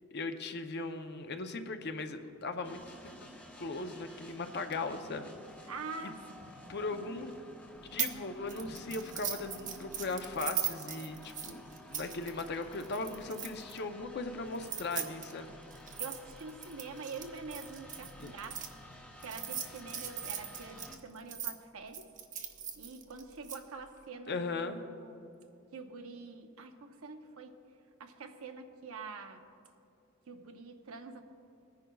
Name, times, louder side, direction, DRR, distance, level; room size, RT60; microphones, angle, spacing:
voice 1, 0.1-2.8 3.6-5.3 6.0-6.1 6.7-7.3 7.9-11.6 11.9-15.5 18.2-18.3 24.3-24.8, left 3 dB, 50° left, 7 dB, 0.7 m, -38 dB
sound 1, 2.6-21.0, equal, 5° left, 0.8 m, -52 dB
voice 2, 5.7-6.2 6.6-6.7 16.0-18.6 19.2-22.0 22.8-25.3 25.7-27.5 28.0-29.4 30.3-31.2, right 4 dB, 80° right, 6 dB, 0.8 m, -45 dB
sound 2, 8.0-8.2 8.5-13.8 14.5-18.7 19.2-21.5 21.9-23.6, right 9 dB, 35° right, 0.8 m, -39 dB
21.0 x 10.5 x 2.3 m, 2.7 s
head